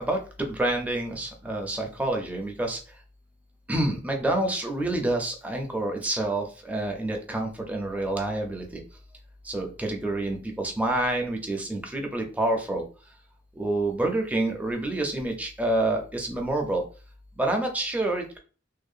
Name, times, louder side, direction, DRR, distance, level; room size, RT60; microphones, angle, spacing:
voice 1, 0.0-2.8 3.7-8.8 9.5-12.8 13.6-16.8 17.4-18.4, right 2 dB, 10° right, 2 dB, 0.4 m, -28 dB
2.7 x 2.1 x 2.4 m, 0.36 s
head